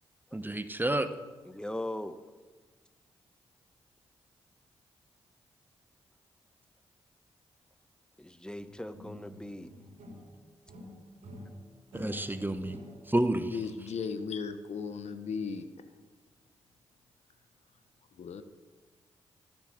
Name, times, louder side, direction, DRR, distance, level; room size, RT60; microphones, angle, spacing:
voice 1, 0.3-1.1 11.9-12.8 13.1-13.5, right 1 dB, 15° right, 10 dB, 1.2 m, -30 dB
voice 2, 1.4-2.2 8.2-9.7, left 1 dB, 5° left, 11 dB, 1.2 m, -39 dB
sound 1, 8.6-10.4 10.7-13.3, left 1 dB, 80° right, 3.9 m, -48 dB
voice 3, 13.5-15.7 18.2-18.4, left 5 dB, 70° left, 10 dB, 1.1 m, -36 dB
17.5 x 7.2 x 8.0 m, 1.3 s
supercardioid pair, 40°, 12 cm